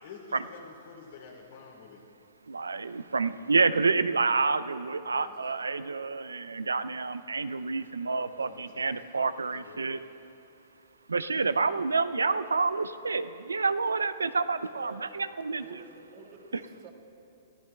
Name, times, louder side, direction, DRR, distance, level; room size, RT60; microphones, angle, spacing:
voice 1, 0.0-2.0 5.1-5.3 8.4-8.9 9.5-9.9, left 6 dB, 60° left, 0 dB, 2.9 m, -49 dB
voice 2, 2.5-10.0 11.1-15.6, right 4 dB, 85° right, 14 dB, 0.4 m, -28 dB
voice 3, 14.7-15.1 15.6-16.9, right 5 dB, 40° right, 1 dB, 1.7 m, -49 dB
22.5 x 14.0 x 2.3 m, 3.0 s
hypercardioid pair, 115°, 0 cm